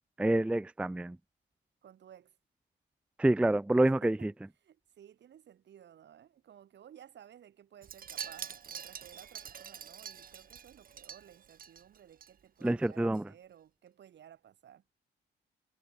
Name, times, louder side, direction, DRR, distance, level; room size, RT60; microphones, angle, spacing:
voice 1, 0.2-1.2 3.2-4.3 12.6-13.2, right 1 dB, 5° right, 0.4 m, -27 dB
voice 2, 1.8-2.4 3.8-4.3 4.6-14.8, right 10 dB, 60° right, 2.9 m, -56 dB
Wind chime, 7.8-12.3 12.6-12.9 13.1-13.2, right 8 dB, 45° right, 1.4 m, -45 dB
cardioid pair, 90°, 20 cm